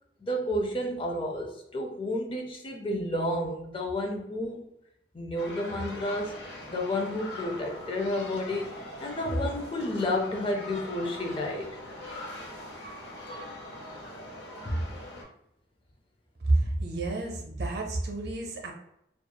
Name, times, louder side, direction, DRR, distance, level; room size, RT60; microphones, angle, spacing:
voice 1, 0.2-4.6 5.1-6.3 6.7-8.7 9.0-11.7 14.6-14.9 16.6-16.7, left 1 dB, 30° left, 1 dB, 0.3 m, -31 dB
sound 1, 5.4-15.2, left 1 dB, 75° left, 0.8 m, -42 dB
voice 2, 16.4-18.7, right 2 dB, 65° right, 1 dB, 0.6 m, -29 dB
3.0 x 2.4 x 2.2 m, 0.78 s
head